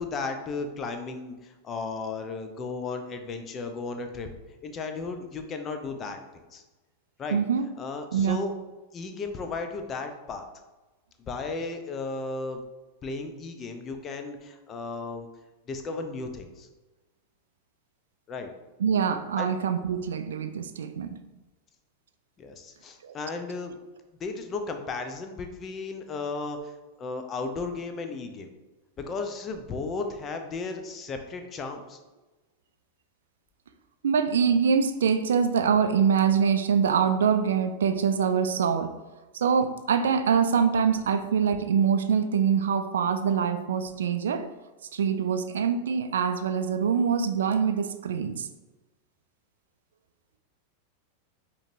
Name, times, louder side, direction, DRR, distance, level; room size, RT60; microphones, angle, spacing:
voice 1, 0.0-4.3 4.6-6.2 6.5-6.6 7.2-7.4 7.8-8.5 8.9-10.4 11.2-12.6 13.0-15.3 15.7-16.7 18.3-18.5 19.4-19.6 22.4-23.8 24.2-26.7 27.0-28.5 29.0-32.0, left 3 dB, 25° left, 6 dB, 0.5 m, -34 dB
voice 2, 7.3-7.7 8.1-8.4 18.8-21.1 23.0-23.2 34.0-38.9 39.3-44.5 44.9-48.5, right 7 dB, 65° right, 9 dB, 0.3 m, -24 dB
5.0 x 3.0 x 2.6 m, 1.1 s
figure-of-eight pair, 90°, 0 cm